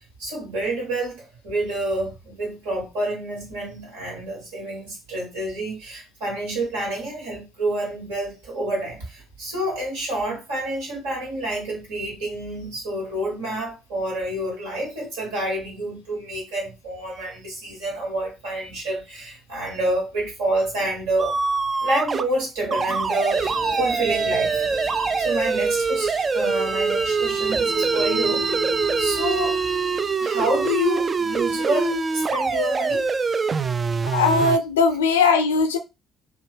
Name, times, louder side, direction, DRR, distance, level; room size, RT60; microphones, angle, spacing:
voice 1, 0.2-21.4 21.8-24.6 25.2-28.5 29.0-29.6 30.2-33.0, right 1 dB, 70° right, 1.4 m, -28 dB
sound 1, 21.2-22.2 22.7-34.6, right 5 dB, 35° right, 0.3 m, -24 dB
sound 2, 23.3-30.1, right 2 dB, 50° right, 1.1 m, -30 dB
voice 2, 34.1-35.8, left 4 dB, 80° left, 0.4 m, -19 dB
2.9 x 2.3 x 3.3 m
figure-of-eight pair, 50°, 0 cm